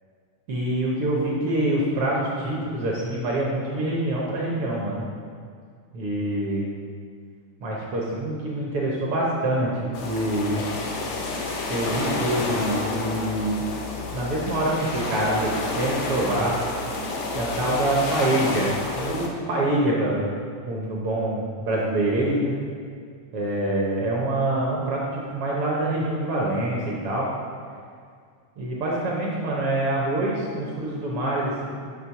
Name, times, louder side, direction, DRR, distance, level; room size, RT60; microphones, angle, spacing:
voice 1, 0.5-5.1 5.9-6.6 7.6-10.7 11.7-13.7 14.1-16.6 17.3-20.3 20.6-22.5 23.3-27.3 28.6-31.7, right 1 dB, 65° right, -4 dB, 1.5 m, -25 dB
sound 1, 9.9-19.3, left 3 dB, 90° left, 1.0 m, -29 dB
7.8 x 3.3 x 5.7 m, 2.1 s
omnidirectional pair, 3.3 m